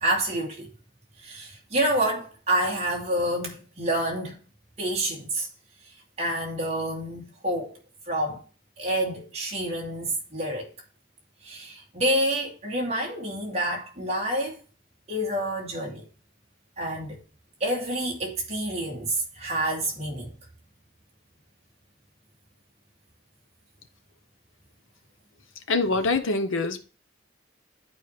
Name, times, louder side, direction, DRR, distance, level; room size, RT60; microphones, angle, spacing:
voice 1, 0.0-0.7 1.2-4.4 4.8-5.5 6.2-7.8 8.1-8.4 8.8-10.7 11.4-14.6 15.1-16.1 16.8-17.2 17.6-20.3, right 1 dB, 35° right, 2.4 m, -28 dB
voice 2, 25.7-26.9, left 3 dB, 85° left, 0.8 m, -24 dB
11.5 x 4.5 x 3.2 m
head